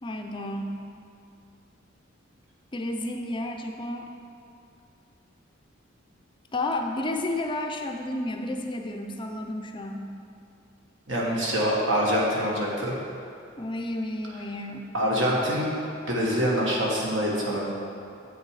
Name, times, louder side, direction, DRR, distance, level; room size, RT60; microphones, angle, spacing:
voice 1, 0.0-0.8 2.7-4.1 6.5-10.1 13.6-14.9, left 1 dB, 25° left, 3 dB, 0.4 m, -31 dB
voice 2, 11.1-13.0 14.9-15.7 16.1-17.7, equal, 65° right, -4 dB, 1.7 m, -25 dB
7.9 x 6.6 x 4.8 m, 2.5 s
head